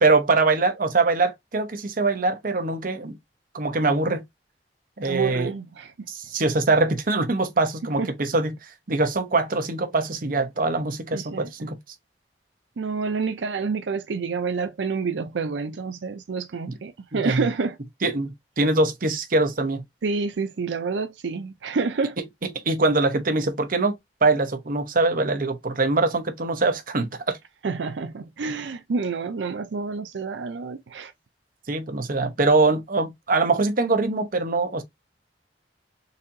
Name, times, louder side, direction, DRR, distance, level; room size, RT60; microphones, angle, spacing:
voice 1, 0.0-3.2 3.5-4.2 5.0-5.5 6.1-8.6 8.9-11.8 16.7-16.8 17.1-17.5 18.0-19.8 22.6-24.0 24.2-27.4 31.7-34.8, right 3 dB, 50° right, 0.9 m, -23 dB
voice 2, 5.0-5.9 8.0-8.1 11.1-11.5 12.8-17.8 20.0-22.2 27.6-31.1, right 4 dB, 85° right, 0.5 m, -28 dB
4.0 x 2.8 x 2.6 m
head